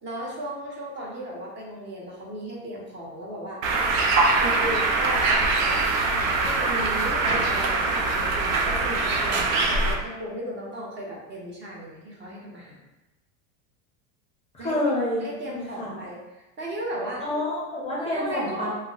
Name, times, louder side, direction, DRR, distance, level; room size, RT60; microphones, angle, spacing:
voice 1, 0.0-3.8 4.4-5.9 6.3-12.8 14.6-14.8 15.2-17.2 18.0-18.7, equal, 30° right, -3 dB, 0.8 m, -36 dB
Bird, 3.6-9.9, right 3 dB, 85° right, 0.6 m, -23 dB
sound 1, 4.1-8.7, right 3 dB, 60° right, 0.8 m, -29 dB
voice 2, 14.5-15.2 15.5-15.9 17.3-18.7, left 1 dB, 15° left, -6 dB, 0.5 m, -28 dB
2.7 x 2.1 x 3.7 m, 1.0 s
supercardioid pair, 130°, 39 cm